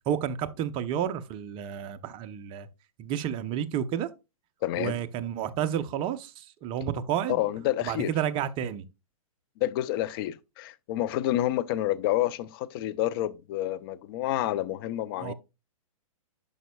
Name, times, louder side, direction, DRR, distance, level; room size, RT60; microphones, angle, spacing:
voice 1, 0.1-2.7 3.0-4.1 4.8-7.4 7.8-8.8 15.2-15.3, right 9 dB, 25° right, 0.7 m, -31 dB
voice 2, 4.6-5.0 7.3-8.1 9.6-15.3, left 14 dB, 40° left, 0.6 m, -29 dB
11.0 x 5.2 x 2.3 m
hypercardioid pair, 130°, 18 cm